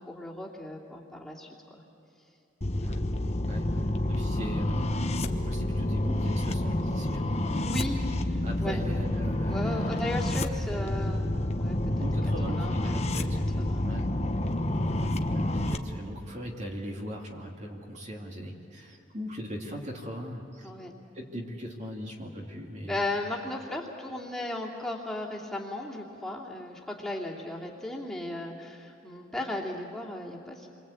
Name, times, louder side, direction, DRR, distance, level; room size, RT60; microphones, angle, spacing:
voice 1, 0.0-1.8 7.6-8.8 9.4-12.1 12.5-13.0 13.4-13.9 14.4-14.5 20.6-20.9 22.8-30.7, left 1 dB, 5° left, -4 dB, 2.8 m, -36 dB
sound 1, 2.6-15.8, left 1 dB, 35° left, 1.2 m, -29 dB
voice 2, 3.5-5.1 5.5-7.3 8.4-10.1 12.0-13.4 13.8-14.1 15.3-20.7 21.1-23.0, equal, 40° right, 0 dB, 2.6 m, -40 dB
29.0 x 24.0 x 8.5 m, 2.7 s
head